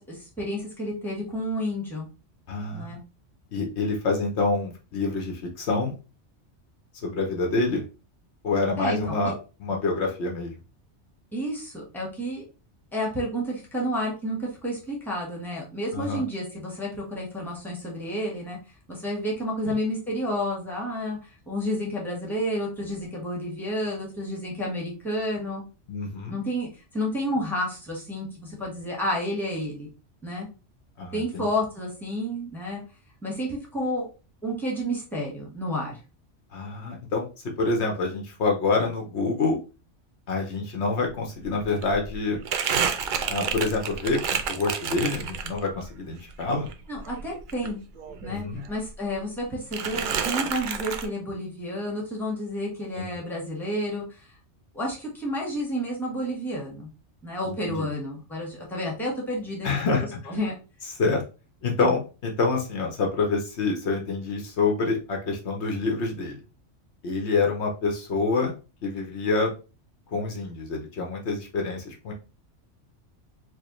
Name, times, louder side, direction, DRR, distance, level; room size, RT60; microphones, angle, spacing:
voice 1, 0.0-2.1 2.7-3.0 8.8-9.3 11.3-12.4 12.9-18.6 18.9-21.2 21.5-25.6 26.3-29.9 30.2-30.5 31.1-32.8 33.2-34.1 34.4-35.9 46.9-47.8 48.2-54.2 54.7-56.9 57.2-59.7 60.3-60.5, equal, ahead, -3 dB, 1.1 m, -30 dB
voice 2, 2.5-3.0 3.5-5.9 7.0-7.8 8.4-9.3 9.6-10.5 15.9-16.2 19.7-19.8 25.9-26.4 31.0-31.5 36.5-37.3 37.6-39.6 40.3-42.4 43.3-44.2 44.5-46.7 48.3-48.6 53.0-53.2 57.4-57.9 59.6-60.4 61.0-61.2 61.6-66.4 67.0-68.5 68.8-69.5 70.1-72.1, left 3 dB, 70° left, 0 dB, 1.0 m, -27 dB
Crumpling crinkling, 41.1-41.2 41.4-45.9 46.2-48.4 48.6-49.4 49.7-51.1, right 6 dB, 60° right, 0.5 m, -30 dB
4.7 x 2.1 x 3.0 m, 0.32 s
omnidirectional pair, 1.2 m